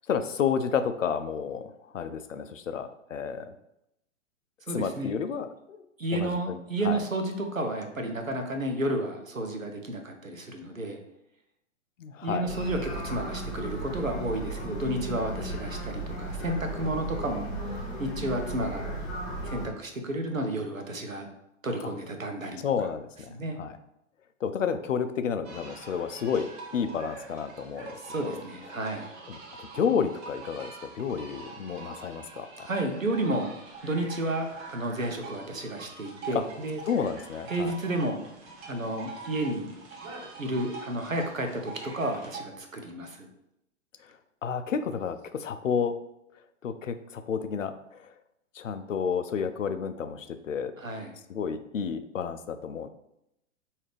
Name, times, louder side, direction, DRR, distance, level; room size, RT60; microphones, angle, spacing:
voice 1, 0.1-3.5 4.7-5.8 6.1-7.0 12.0-12.5 22.6-23.8 24.4-27.9 28.2-28.4 29.3-32.5 36.9-37.7 44.4-45.9 46.6-48.0 48.6-50.7 51.3-52.9, left 6 dB, 75° left, 10 dB, 0.5 m, -31 dB
voice 2, 4.7-5.2 6.0-11.0 12.2-19.1 19.4-21.3 21.6-22.9 23.3-23.6 28.0-29.1 32.6-33.5 33.8-36.8 37.5-38.2 38.7-39.7 40.4-43.3 50.8-51.1, right 1 dB, 90° right, 4 dB, 0.8 m, -32 dB
sound 1, 12.5-19.7, right 1 dB, 30° left, 1.1 m, -35 dB
sound 2, 25.4-42.4, right 4 dB, 20° right, 0.6 m, -45 dB
4.8 x 2.8 x 3.2 m, 0.83 s
figure-of-eight pair, 110°, 39 cm